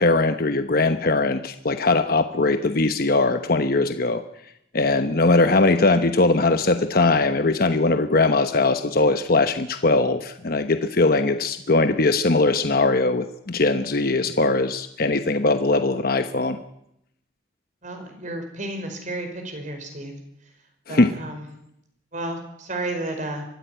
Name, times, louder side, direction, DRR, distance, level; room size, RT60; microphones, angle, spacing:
voice 1, 0.0-4.2 4.7-16.6 20.9-21.1, left 3 dB, 50° left, 8 dB, 1.1 m, -20 dB
voice 2, 17.8-20.1 20.9-21.4 22.1-23.5, right 1 dB, 40° right, 5 dB, 5.2 m, -32 dB
23.5 x 15.0 x 9.3 m, 0.78 s
head